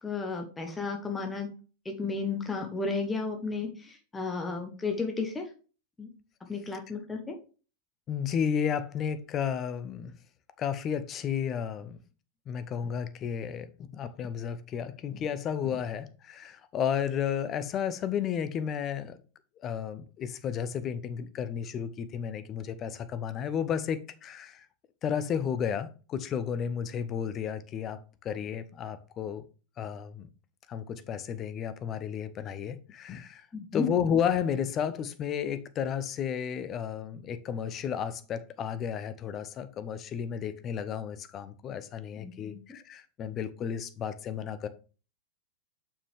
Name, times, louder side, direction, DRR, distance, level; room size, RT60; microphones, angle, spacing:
voice 1, 0.0-1.5 1.8-5.5 6.0-6.1 6.5-7.4 33.5-33.8 42.2-42.6, left 4 dB, 15° left, 1.3 m, -33 dB
voice 2, 8.1-10.1 10.6-12.0 12.5-19.2 19.6-24.7 25.0-29.4 29.8-30.3 30.7-33.5 33.7-44.7, left 8 dB, 30° left, 0.8 m, -32 dB
6.9 x 5.7 x 3.5 m
figure-of-eight pair, 90°, 0 cm